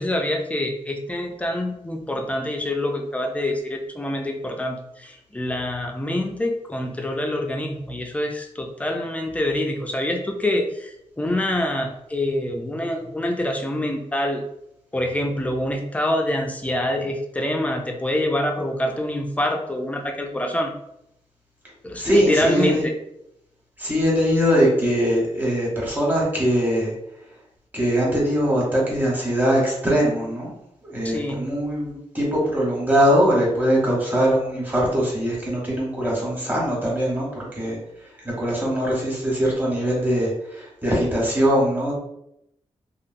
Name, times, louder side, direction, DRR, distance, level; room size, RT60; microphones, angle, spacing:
voice 1, 0.0-14.4 14.9-20.7 21.8-22.9 31.0-31.4, left 1 dB, 10° left, 3 dB, 0.4 m, -26 dB
voice 2, 22.0-22.8 23.8-26.9 27.7-30.5 30.8-37.8 38.2-41.9, equal, 15° right, -5 dB, 1.1 m, -21 dB
3.1 x 2.4 x 2.5 m, 0.80 s
wide cardioid pair, 135°, 12 cm